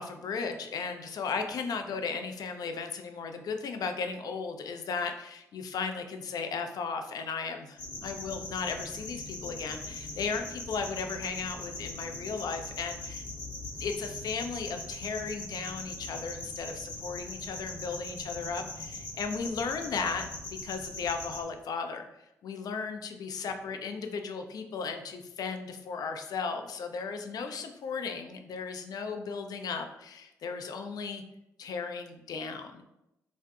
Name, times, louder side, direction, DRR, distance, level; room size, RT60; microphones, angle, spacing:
voice 1, 0.0-13.3 13.8-20.2 20.6-22.1 22.4-31.2 31.6-32.8, left 5 dB, 55° left, 6 dB, 0.3 m, -35 dB
sound 1, 7.8-21.4, left 2 dB, 75° left, 0.7 m, -41 dB
2.5 x 2.4 x 2.2 m, 0.85 s
hypercardioid pair, 40°, 8 cm